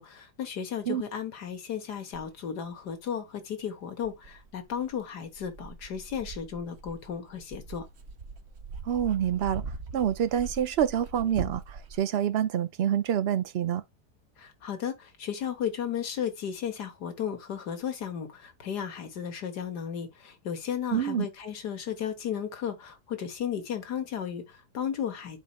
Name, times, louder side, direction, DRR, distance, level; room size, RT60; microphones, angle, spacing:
voice 1, 0.0-7.9 14.4-25.4, left 8 dB, 90° left, 1.9 m, -34 dB
Dog, 2.1-2.3 3.1-3.2 4.0-12.0, right 4 dB, 50° right, 1.1 m, -42 dB
voice 2, 8.8-9.6 9.9-13.8 20.9-21.3, right 10 dB, 65° right, 0.6 m, -27 dB
11.5 x 4.4 x 2.3 m
omnidirectional pair, 1.7 m